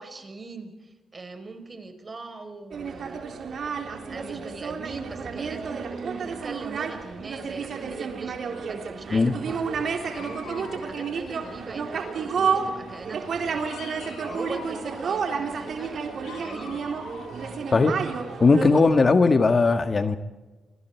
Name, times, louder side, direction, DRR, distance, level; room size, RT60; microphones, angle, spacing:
voice 1, 0.0-3.7 4.1-14.0 14.3-16.0 16.4-16.9, right 3 dB, 35° right, 8 dB, 4.7 m, -41 dB
sound 1, 2.7-18.8, right 5 dB, 65° right, 3.6 m, -31 dB
Dog, 10.0-12.3 12.6-18.6, left 5 dB, 90° left, 7.2 m, -46 dB
voice 2, 18.4-20.2, left 4 dB, 40° left, 9 dB, 1.7 m, -18 dB
29.0 x 23.5 x 4.6 m, 1.2 s
supercardioid pair, 60°, 0 cm